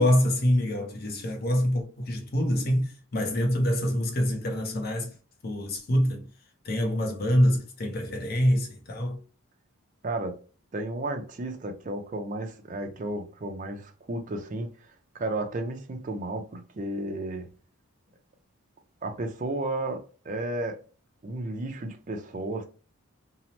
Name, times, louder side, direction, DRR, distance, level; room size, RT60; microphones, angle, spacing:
voice 1, 0.0-5.1 5.4-6.2 6.6-9.2, equal, 45° left, 0.5 m, -25 dB
voice 2, 10.0-10.4 10.7-17.5 19.0-20.8 21.2-22.7, right 2 dB, 35° right, 0.4 m, -33 dB
2.7 x 2.0 x 2.9 m
head